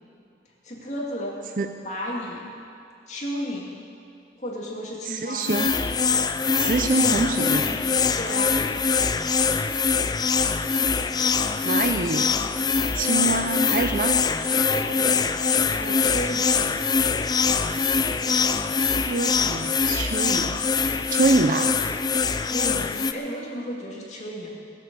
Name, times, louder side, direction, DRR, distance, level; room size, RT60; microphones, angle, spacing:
voice 1, 0.6-1.4 1.8-2.5 3.1-3.7 4.4-5.5 6.8-8.6 14.5-15.2 15.7-16.5 22.5-24.5, equal, 40° left, -3 dB, 2.6 m, -33 dB
voice 2, 5.1-5.7 6.6-7.6 11.6-12.4 12.9-14.1 19.0-20.6 21.1-21.8, right 3 dB, 45° right, 6 dB, 0.5 m, -25 dB
sound 1, 5.4-23.1, left 5 dB, 20° left, 0.4 m, -23 dB
21.0 x 7.6 x 7.6 m, 2.4 s
head